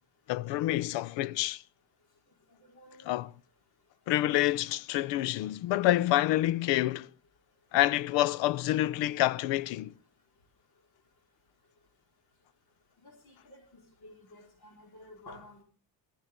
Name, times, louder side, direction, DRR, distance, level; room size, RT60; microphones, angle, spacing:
voice 1, 0.3-1.6 3.1-3.3 4.1-7.1 7.7-9.9, left 15 dB, 90° left, 0.7 m, -27 dB
voice 2, 2.6-3.1 13.0-15.6, left 2 dB, 60° left, 4.8 m, -52 dB
23.5 x 14.0 x 3.7 m
cardioid pair, 100°, 43 cm